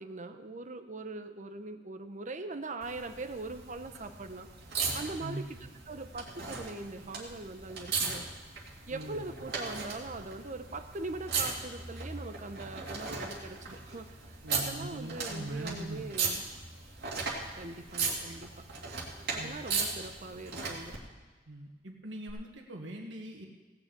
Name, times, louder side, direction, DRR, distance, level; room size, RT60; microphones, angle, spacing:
voice 1, 0.0-4.5 4.9-5.4 5.9-8.3 8.9-16.4 17.6-18.7 19.3-21.0, right 2 dB, 40° right, 8 dB, 0.9 m, -41 dB
sound 1, 2.8-21.0 22.3-22.4, right 4 dB, 60° right, 2.8 m, -37 dB
voice 2, 5.2-5.6 8.9-9.4 14.4-16.2 19.4-19.6 21.5-23.5, right 1 dB, 90° right, 1 dB, 1.6 m, -41 dB
17.0 x 6.5 x 8.2 m, 1.3 s
head